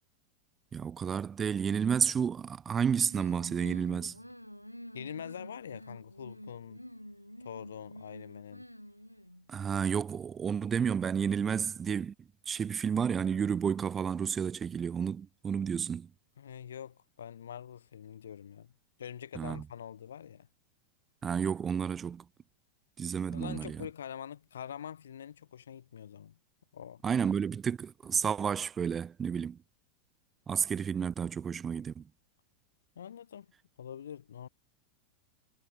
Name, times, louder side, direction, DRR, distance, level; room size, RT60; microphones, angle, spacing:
voice 1, 0.7-4.1 9.5-12.1 12.5-16.1 19.4-19.6 21.2-22.2 23.0-23.8 27.0-29.6 30.5-32.0, right 7 dB, 20° right, 0.7 m, -31 dB
sound 1, 3.1-9.5, equal, 90° left, 0.7 m, -48 dB
voice 2, 4.9-6.9 7.4-8.6 16.4-18.7 19.0-20.5 23.3-26.4 26.7-27.0 33.0-33.5 33.8-34.5, left 9 dB, 65° left, 2.5 m, -44 dB
figure-of-eight pair, 90°, 0 cm